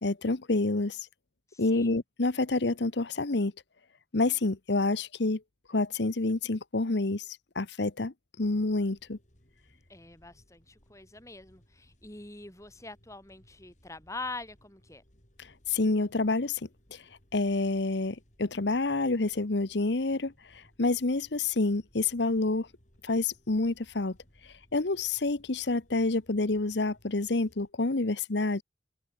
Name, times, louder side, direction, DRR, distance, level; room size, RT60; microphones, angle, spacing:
voice 1, 0.0-1.1 1.6-3.5 4.1-5.4 5.7-9.2 15.4-16.6 16.9-17.0 17.3-22.7 23.0-24.1 24.4-28.6, left 3 dB, 70° left, 1.1 m, -28 dB
voice 2, 1.5-1.9 9.9-15.0, left 3 dB, 15° left, 4.3 m, -44 dB
sound 1, 8.4-27.7, equal, 40° left, 6.9 m, -63 dB
head